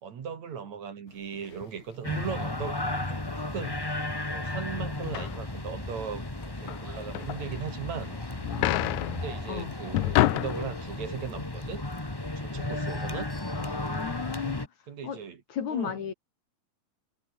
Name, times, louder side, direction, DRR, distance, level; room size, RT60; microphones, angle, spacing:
voice 1, 0.0-2.8 3.1-3.8 4.3-8.1 9.1-11.9 12.3-13.3 14.9-15.4 15.7-16.1, right 7 dB, 55° right, 3.4 m, -38 dB
sound 1, 1.3-1.7 2.4-2.5 3.3-3.5 3.8-4.1 4.8-7.8 8.1-11.0, left 17 dB, 85° left, 1.7 m, -30 dB
sound 2, 2.0-14.7, left 2 dB, 15° left, 0.7 m, -34 dB
voice 2, 13.5-14.7 15.0-15.2 15.5-16.1, left 8 dB, 55° left, 3.2 m, -34 dB
omnidirectional pair, 4.1 m